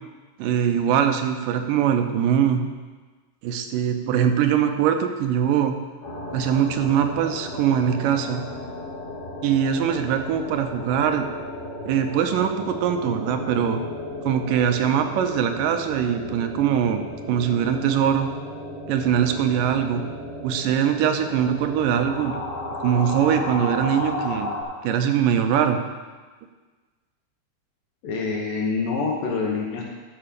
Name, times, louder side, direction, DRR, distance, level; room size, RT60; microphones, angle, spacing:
voice 1, 0.4-2.6 3.4-5.8 6.3-8.4 9.4-11.3 11.9-13.8 14.3-18.3 18.9-20.0 20.4-22.4 22.8-24.5 24.8-25.8, right 9 dB, 85° right, 6 dB, 2.4 m, -22 dB
sound 1, 6.0-24.6, left 1 dB, 60° left, 3.0 m, -34 dB
voice 2, 28.0-29.8, left 4 dB, 85° left, -3 dB, 2.9 m, -26 dB
11.0 x 5.8 x 6.7 m, 1.3 s
omnidirectional pair, 3.8 m